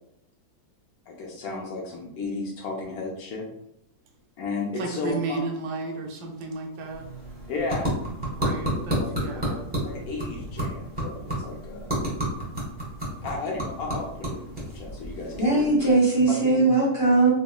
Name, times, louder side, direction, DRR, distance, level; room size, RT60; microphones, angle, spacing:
voice 1, 1.1-3.5 4.4-5.4 7.5-8.0 8.7-9.1 9.5-9.6 9.8-11.9 13.2-15.9 16.4-16.7, left 3 dB, 70° left, -1 dB, 1.0 m, -33 dB
voice 2, 4.7-7.1 8.3-9.6, right 3 dB, 80° right, 2 dB, 1.1 m, -33 dB
sound 1, 6.7-16.2, right 1 dB, 5° right, 0.8 m, -32 dB
voice 3, 15.4-17.3, right 3 dB, 25° left, -7 dB, 0.8 m, -20 dB
3.7 x 2.1 x 2.3 m, 0.78 s
omnidirectional pair, 1.7 m